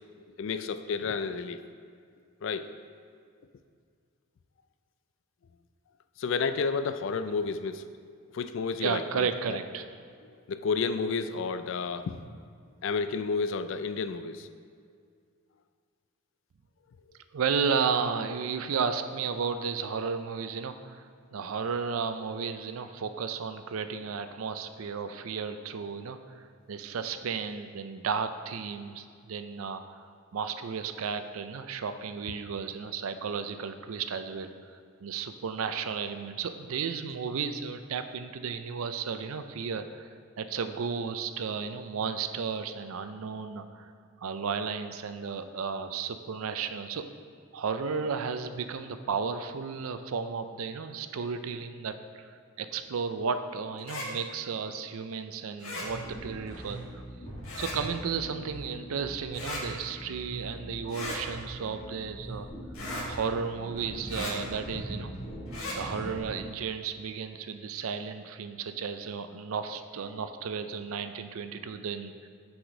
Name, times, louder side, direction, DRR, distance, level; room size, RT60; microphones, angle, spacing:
voice 1, 0.4-1.6 2.4-2.7 6.2-7.9 8.3-9.6 10.5-12.2 12.8-14.5, left 5 dB, 60° left, 11 dB, 0.3 m, -31 dB
voice 2, 8.8-9.9 17.3-40.1 40.4-43.9 44.2-47.0 47.5-52.3 52.6-56.8 57.6-62.5 63.1-65.1 65.8-72.3, right 6 dB, 80° right, 9 dB, 0.4 m, -33 dB
sound 1, 53.8-54.1 55.6-55.9 57.4-57.8 59.3-59.6 60.9-61.2 62.7-63.1 64.1-64.3 65.5-65.8, left 2 dB, 75° left, 1.6 m, -36 dB
sound 2, 55.9-66.4, right 1 dB, 30° left, 1.7 m, -42 dB
6.2 x 4.9 x 5.1 m, 2.2 s
head